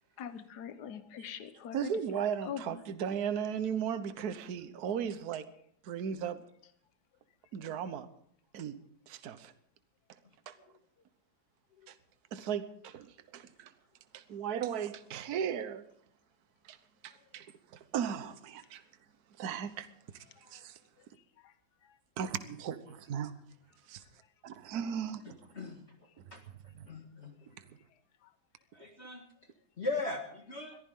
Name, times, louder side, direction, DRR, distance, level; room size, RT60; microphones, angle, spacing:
voice 1, 0.2-1.9 2.4-2.8 20.4-20.6 21.4-21.5, left 8 dB, 60° left, 1.6 m, -43 dB
voice 2, 1.7-5.5 5.8-6.4 7.5-8.1 8.5-8.8 9.1-9.5 10.5-10.6 11.9-12.0 12.3-13.7 14.1-15.8 16.6-16.8 17.0-17.5 17.7-18.8 19.4-19.9 20.5-20.8 22.2-23.3 23.9-24.0 24.4-25.2 26.7-26.9 27.6-27.7, right 8 dB, 55° right, 1.5 m, -36 dB
voice 3, 26.9-27.3 28.7-29.2 29.8-30.8, left 3 dB, 35° left, 1.9 m, -38 dB
22.0 x 15.0 x 3.7 m
omnidirectional pair, 2.1 m